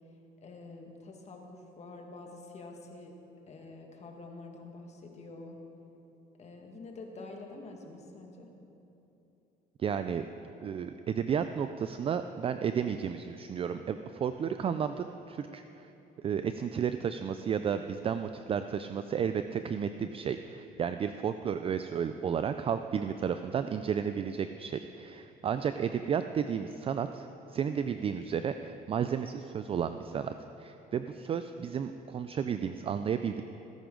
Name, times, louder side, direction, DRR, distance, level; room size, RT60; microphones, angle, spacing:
voice 1, 0.4-3.1 3.5-5.6 6.4-8.5, left 3 dB, 40° left, 2 dB, 1.8 m, -47 dB
voice 2, 9.8-10.3 10.6-15.9 16.2-30.3 30.6-33.4, right 7 dB, 35° right, 9 dB, 0.4 m, -32 dB
18.5 x 10.5 x 3.8 m, 3.0 s
cardioid pair, 110°, 17 cm